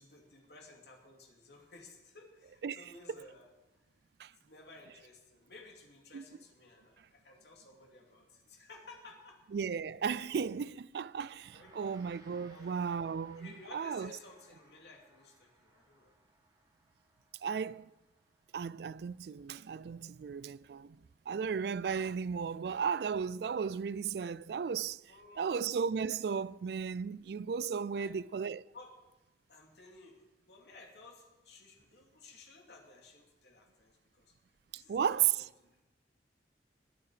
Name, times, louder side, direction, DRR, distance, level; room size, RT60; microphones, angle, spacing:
voice 1, 0.0-3.5 4.4-9.4 11.5-12.0 12.5-12.8 13.4-16.1 25.1-25.6 27.9-28.2 28.7-28.9 29.5-34.3 34.7-35.2 35.6-35.8, left 3 dB, 70° left, 2.8 m, -56 dB
voice 2, 9.5-14.2 17.4-17.9 18.5-21.0 21.3-25.0 25.4-28.6 34.7-35.5, right 7 dB, 65° right, 0.3 m, -35 dB
Gong, 11.4-21.0, right 2 dB, 20° right, 2.0 m, -65 dB
20.5 x 8.7 x 5.0 m
head